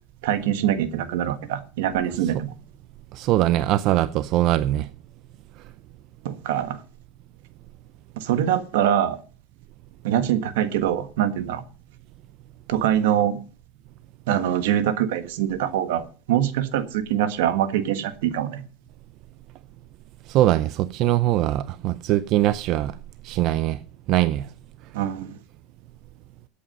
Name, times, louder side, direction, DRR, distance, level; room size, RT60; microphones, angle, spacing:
voice 1, 0.2-2.5 6.2-6.8 8.2-9.2 10.0-11.6 12.7-13.4 14.3-18.6 24.9-25.4, right 10 dB, 80° right, 1.4 m, -24 dB
voice 2, 3.1-4.9 20.3-22.9 23.2-23.8 24.1-24.5, right 14 dB, 55° right, 0.5 m, -21 dB
13.0 x 8.5 x 5.5 m
supercardioid pair, 120°, 0 cm